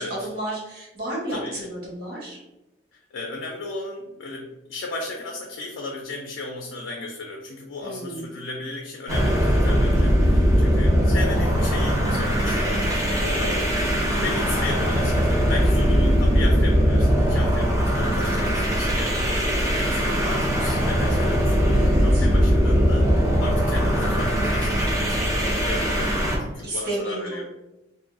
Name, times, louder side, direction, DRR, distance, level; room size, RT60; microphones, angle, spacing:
voice 1, 0.0-2.4 7.8-8.3 14.1-14.5 21.7-22.3 26.6-27.5, right 1 dB, 55° right, -5 dB, 1.0 m, -32 dB
voice 2, 2.9-27.5, left 2 dB, 80° left, 1 dB, 0.4 m, -35 dB
sound 1, 9.1-26.4, equal, 15° right, 0.5 m, -20 dB
2.6 x 2.3 x 2.4 m, 0.95 s
head